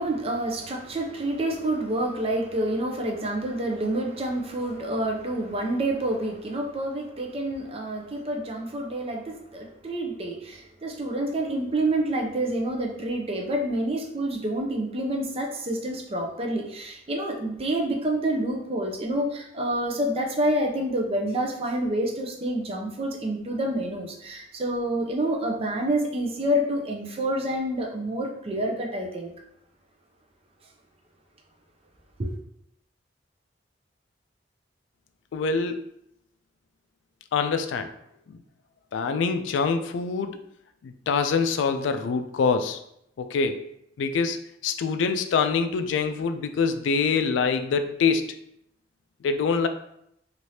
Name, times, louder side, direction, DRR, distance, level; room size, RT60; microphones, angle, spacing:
voice 1, 0.0-29.3 32.2-32.3, right 1 dB, 30° right, 1 dB, 0.5 m, -28 dB
voice 2, 35.3-35.8 37.3-37.9 38.3-38.4 38.9-40.4 40.8-42.8 43.2-43.6 44.0-44.4 44.6-48.3 49.2-49.7, left 5 dB, 75° left, 8 dB, 0.3 m, -25 dB
2.8 x 2.5 x 3.2 m, 0.76 s
head